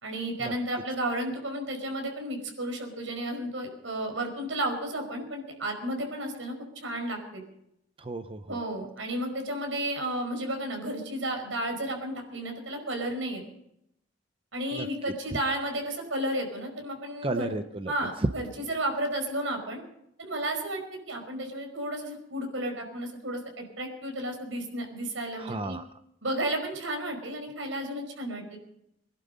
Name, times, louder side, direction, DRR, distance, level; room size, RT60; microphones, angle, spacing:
voice 1, 0.0-7.4 8.5-13.4 14.5-17.5 17.9-19.8 20.2-20.8 21.1-25.8 26.2-28.6, right 1 dB, 85° right, 3 dB, 5.2 m, -32 dB
voice 2, 8.0-8.6 14.7-14.9 17.2-17.9 25.4-25.8, right 2 dB, 30° right, 9 dB, 0.6 m, -33 dB
23.0 x 11.5 x 5.4 m, 0.78 s
head